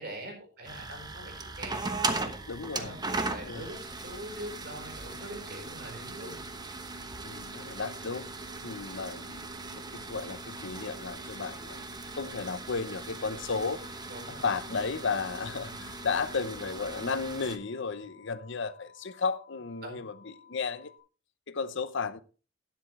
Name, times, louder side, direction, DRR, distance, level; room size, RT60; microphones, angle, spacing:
voice 1, 0.0-2.3 2.7-3.0 3.3-6.4 8.5-8.7 13.3-13.4 14.1-14.4 19.8-20.0, right 1 dB, 55° right, 4.7 m, -43 dB
sound 1, 0.6-17.6, right 3 dB, 20° right, 1.0 m, -38 dB
voice 2, 2.5-3.7 7.2-8.3 8.6-11.9 12.2-13.8 14.3-20.9 21.5-22.2, left 5 dB, 65° left, 0.8 m, -34 dB
sound 2, 13.8-21.0, left 7 dB, 40° left, 3.5 m, -57 dB
12.0 x 10.5 x 3.2 m
head